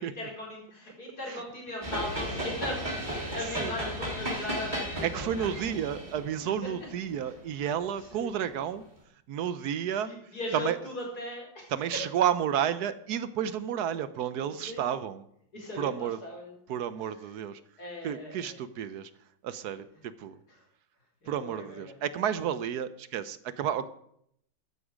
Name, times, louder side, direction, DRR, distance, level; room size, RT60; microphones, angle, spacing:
voice 1, 0.0-5.7 7.3-7.4 7.9-8.3 10.0-12.0 14.5-15.0 15.5-16.5 17.8-18.6 20.5-20.6 21.2-21.9, left 1 dB, 50° left, -2 dB, 4.9 m, -39 dB
sound 1, 1.8-8.1, right 1 dB, 25° right, 3.1 m, -35 dB
voice 2, 5.0-8.8 9.3-10.1 10.5-10.8 11.7-15.2 15.8-16.2 16.7-17.6 18.0-19.1 19.4-20.4 21.3-23.9, right 9 dB, 70° right, 14 dB, 1.1 m, -31 dB
13.5 x 9.7 x 5.0 m, 0.71 s
omnidirectional pair, 2.1 m